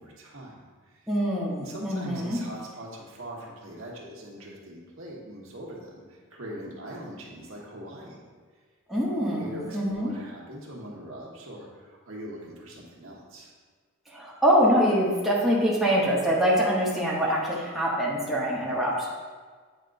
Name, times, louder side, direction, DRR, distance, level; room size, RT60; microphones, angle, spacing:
voice 1, 0.0-1.1 1.6-8.2 9.1-13.5, right 1 dB, 70° right, -3 dB, 1.3 m, -41 dB
voice 2, 1.1-2.4 8.9-10.1 14.1-19.1, equal, ahead, -7 dB, 0.9 m, -24 dB
8.4 x 5.2 x 2.6 m, 1.5 s
head